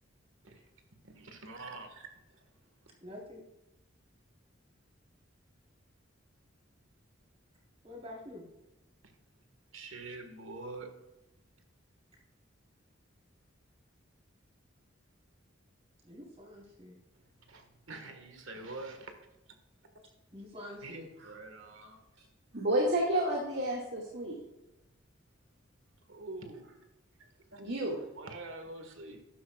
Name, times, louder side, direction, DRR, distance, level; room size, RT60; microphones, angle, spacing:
voice 1, 1.0-2.5 2.8-2.9 9.0-9.1 9.7-11.1 17.5-19.3 20.8-22.0 26.1-26.8 27.2-27.6 28.1-29.2, right 2 dB, 80° right, 1.6 m, -46 dB
voice 2, 3.0-3.4 7.8-8.5 16.0-16.9 20.3-21.1, left 1 dB, 30° right, 3.8 m, -47 dB
voice 3, 22.5-24.4 27.6-28.0, right 1 dB, 60° right, 2.1 m, -30 dB
12.5 x 10.5 x 2.4 m
head